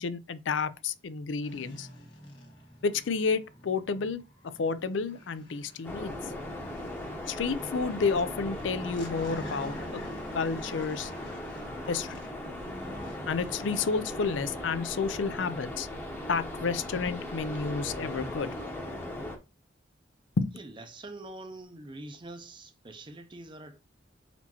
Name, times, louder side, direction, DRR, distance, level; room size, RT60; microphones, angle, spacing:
voice 1, 0.0-1.9 2.8-6.2 7.3-10.0 10.3-11.1 11.9-12.1 13.3-15.9 16.3-18.5 20.4-20.6, left 5 dB, 85° left, 0.5 m, -30 dB
sound 1, 1.4-14.6, equal, 70° left, 1.7 m, -48 dB
sound 2, 5.8-19.4, left 1 dB, 10° left, 0.9 m, -38 dB
voice 2, 20.5-23.8, right 2 dB, 25° right, 0.6 m, -44 dB
4.3 x 4.2 x 2.9 m
head